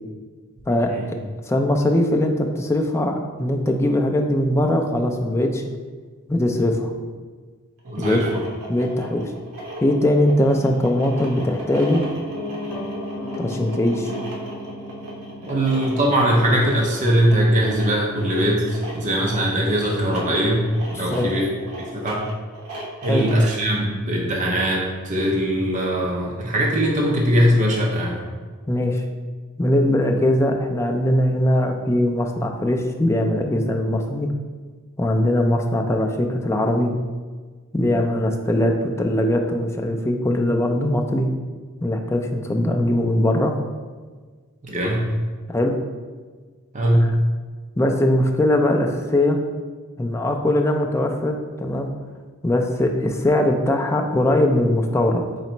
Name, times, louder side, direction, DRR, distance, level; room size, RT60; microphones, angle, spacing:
voice 1, 0.7-1.2 1.5-5.7 6.3-6.9 8.0-8.2 8.7-9.3 9.8-12.0 13.4-14.1 21.0-21.3 23.1-23.3 28.7-29.0 29.6-34.3 35.0-36.9 37.7-41.3 41.8-43.5 45.5-45.7 47.8-49.4 50.0-51.9 52.4-55.2, left 1 dB, 10° left, 2 dB, 0.3 m, -21 dB
sound 1, 7.8-23.5, right 1 dB, 75° right, 1.0 m, -37 dB
voice 2, 7.9-8.4 15.4-21.5 21.8-22.3 23.0-28.2 44.6-45.1 46.7-47.1, equal, 35° right, -2 dB, 0.6 m, -21 dB
Piano, 11.9-21.9 22.2-22.3, left 1 dB, 80° left, 0.6 m, -37 dB
4.0 x 3.0 x 4.3 m, 1.5 s
head